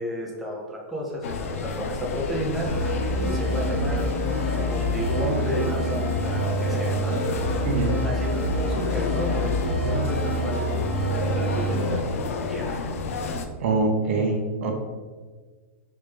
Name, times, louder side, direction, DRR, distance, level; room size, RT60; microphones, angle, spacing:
voice 1, 0.0-4.1 4.5-7.2 7.8-9.5 9.8-10.7 11.1-12.1 12.5-12.8, equal, ahead, -4 dB, 0.6 m, -32 dB
sound 1, 1.2-13.5, left 4 dB, 75° left, 0.5 m, -31 dB
sound 2, 2.7-12.0, equal, 15° left, 1.0 m, -27 dB
voice 2, 7.6-8.0 13.6-14.7, right 3 dB, 60° right, 3 dB, 0.7 m, -24 dB
4.1 x 3.5 x 3.3 m, 1.4 s
supercardioid pair, 155°, 8 cm